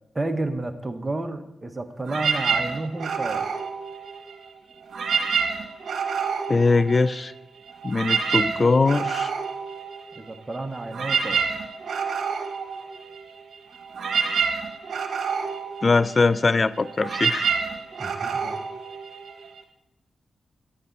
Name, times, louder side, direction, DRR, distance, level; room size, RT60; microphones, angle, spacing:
voice 1, 0.1-3.5 10.1-11.4 18.0-18.6, right 2 dB, 30° right, 7 dB, 1.2 m, -31 dB
sound 1, 2.0-4.5 4.8-7.4 7.7-19.6, right 6 dB, 70° right, 1.3 m, -28 dB
voice 2, 6.5-7.3 7.8-9.3 15.8-17.5, left 3 dB, 45° left, 18 dB, 0.4 m, -21 dB
10.0 x 9.9 x 4.2 m, 0.89 s
supercardioid pair, 45°, 0 cm